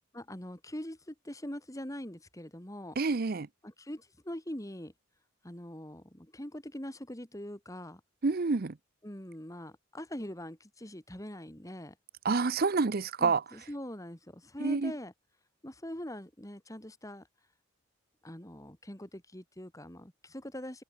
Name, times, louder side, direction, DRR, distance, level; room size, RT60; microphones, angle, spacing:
voice 1, 0.1-3.0 3.6-4.9 5.4-8.0 9.0-11.9 13.2-15.1 15.6-17.3 18.2-20.8, left 1 dB, 15° left, 2.7 m, -43 dB
voice 2, 3.0-3.5 8.2-8.8 12.2-13.4 14.6-14.9, right 4 dB, 45° right, 0.6 m, -28 dB
head